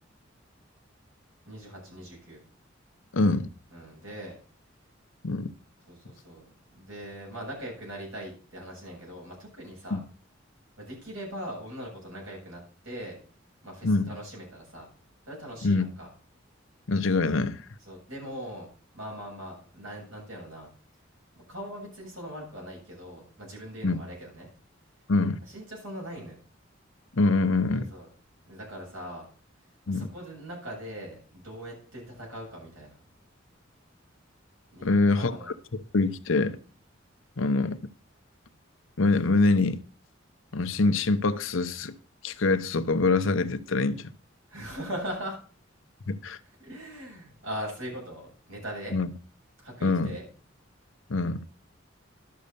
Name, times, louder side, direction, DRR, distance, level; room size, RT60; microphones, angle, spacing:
voice 1, 1.5-2.4 3.7-4.4 5.9-10.0 10.8-13.1 13.6-14.9 15.3-16.1 17.9-18.7 18.9-20.7 21.5-24.5 25.5-26.4 27.7-28.1 28.5-29.3 29.9-33.0 34.7-35.5 44.5-45.4 46.6-49.0 49.6-50.3, equal, 85° right, 7.7 m, -40 dB
voice 2, 3.1-3.5 5.2-5.5 9.9-10.0 13.8-14.1 15.6-15.9 16.9-17.6 23.8-24.0 25.1-25.4 27.1-27.9 29.9-30.1 34.8-35.3 35.7-36.6 37.4-37.8 39.0-39.8 40.5-41.9 42.2-44.1 46.1-46.4 48.9-49.1 49.8-50.2 51.1-51.4, left 3 dB, 85° left, 0.9 m, -24 dB
11.5 x 6.5 x 6.9 m
head